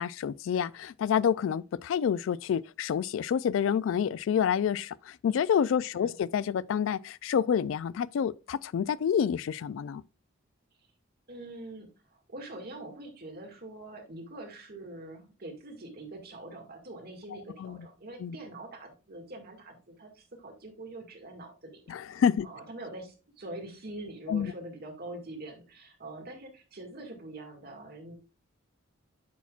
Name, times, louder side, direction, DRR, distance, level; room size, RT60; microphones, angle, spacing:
voice 1, 0.0-10.0 17.6-17.8 18.2-18.4 21.9-22.5 24.3-24.5, left 8 dB, 70° left, 0.3 m, -28 dB
voice 2, 5.8-6.2 11.3-28.1, right 2 dB, 50° right, 2.0 m, -44 dB
8.4 x 5.8 x 2.4 m
head